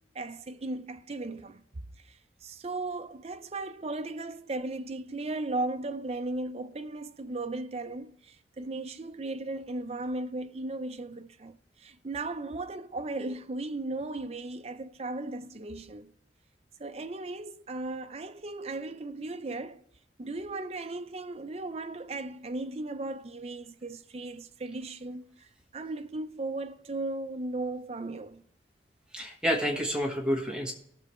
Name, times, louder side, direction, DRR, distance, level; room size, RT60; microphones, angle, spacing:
voice 1, 0.1-16.1 16.8-19.8 20.2-28.4, right 2 dB, 35° right, 0.5 m, -36 dB
voice 2, 29.1-30.7, equal, 5° right, 1.3 m, -29 dB
18.5 x 6.9 x 3.1 m
head